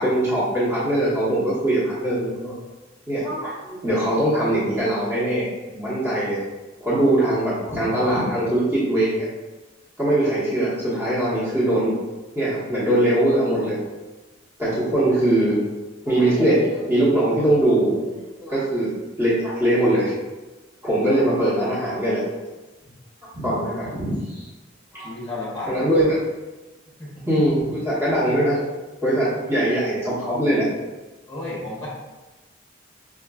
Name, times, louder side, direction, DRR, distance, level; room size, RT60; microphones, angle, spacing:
voice 1, 0.0-2.5 3.1-5.5 5.7-6.4 6.8-9.3 10.0-11.9 12.3-13.8 14.6-15.6 16.0-18.9 19.2-20.1 20.8-22.2 23.3-24.5 24.9-25.1 25.7-26.1 27.2-28.6 29.0-30.7, right 1 dB, 15° right, -10 dB, 1.0 m, -21 dB
voice 2, 25.0-25.8 27.0-27.1 31.3-31.9, left 2 dB, 15° left, -6 dB, 0.8 m, -32 dB
4.9 x 2.3 x 2.3 m, 1.1 s
head